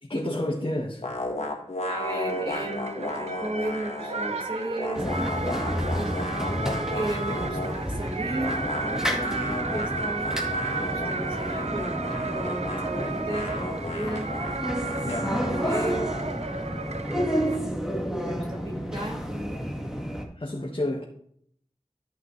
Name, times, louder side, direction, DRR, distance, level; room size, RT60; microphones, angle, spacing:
voice 1, 0.0-1.0 15.0-15.4 20.4-21.0, left 1 dB, 50° left, -3 dB, 1.5 m, -30 dB
sound 1, 1.0-4.3 4.6-7.9 8.3-16.4, left 2 dB, 85° left, 1.3 m, -35 dB
voice 2, 1.9-5.0 5.5-6.2 6.9-10.3 10.8-14.3 15.0-16.0 16.9-17.6 18.2-19.6, right 1 dB, 50° right, -2 dB, 4.2 m, -35 dB
sound 2, 2.0-17.6, right 3 dB, 75° right, 0.6 m, -34 dB
sound 3, 4.9-20.2, equal, 5° right, 1.9 m, -31 dB
13.5 x 6.1 x 3.2 m, 0.65 s
wide cardioid pair, 45°, 11 cm